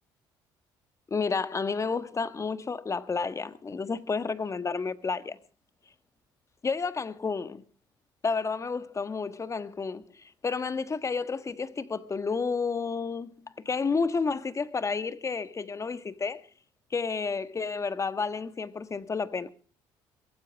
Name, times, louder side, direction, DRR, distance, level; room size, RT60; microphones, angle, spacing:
voice 1, 1.1-5.4 6.6-7.6 8.2-13.3 13.6-16.4 16.9-19.5, left 4 dB, 30° left, 1.5 m, -31 dB
23.0 x 15.5 x 3.5 m
supercardioid pair, 70°, 10 cm